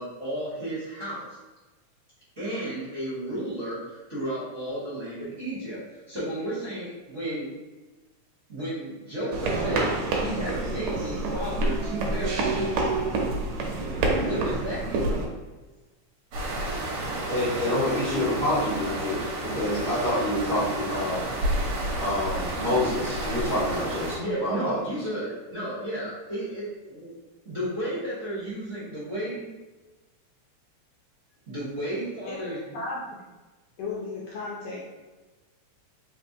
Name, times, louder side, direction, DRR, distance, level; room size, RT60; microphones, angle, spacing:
voice 1, 0.0-1.4 2.4-7.5 8.5-12.5 14.2-15.2 17.6-17.7 24.1-27.1 27.4-29.5 31.5-32.6, right 1 dB, 40° right, -11 dB, 1.1 m, -33 dB
sound 1, 9.3-15.3, right 2 dB, 80° right, 2.0 m, -27 dB
sound 2, 16.3-24.2, right 1 dB, 65° right, 1.5 m, -31 dB
voice 2, 17.3-21.2 21.5-21.6 22.0-24.8, left 1 dB, 30° left, -10 dB, 1.0 m, -27 dB
voice 3, 33.8-34.8, left 3 dB, 75° left, -5 dB, 1.5 m, -34 dB
4.3 x 3.6 x 2.7 m, 1.2 s
omnidirectional pair, 3.3 m